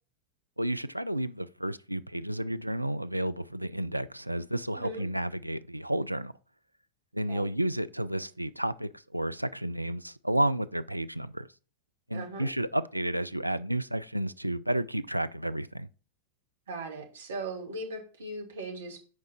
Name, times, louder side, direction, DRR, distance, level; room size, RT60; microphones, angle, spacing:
voice 1, 0.6-6.3 7.1-11.5 12.1-15.9, right 1 dB, 90° right, 0.3 m, -31 dB
voice 2, 4.7-5.1 7.3-7.5 12.1-12.5 16.7-19.0, right 2 dB, 65° right, 1.8 m, -38 dB
6.4 x 4.7 x 4.3 m
figure-of-eight pair, 90°, 0 cm